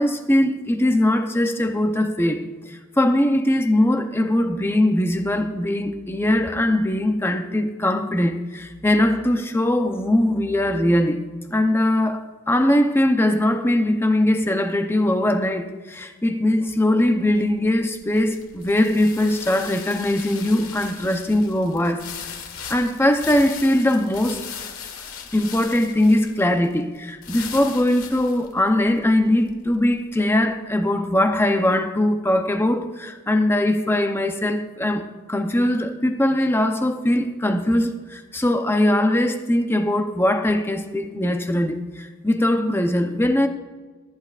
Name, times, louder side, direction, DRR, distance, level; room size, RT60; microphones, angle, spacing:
voice 1, 0.0-22.1 22.7-24.4 25.3-43.5, left 1 dB, 10° left, 0.7 m, -21 dB
sound 1, 17.1-30.4, left 7 dB, 80° left, 1.5 m, -39 dB
20.0 x 10.5 x 2.5 m
head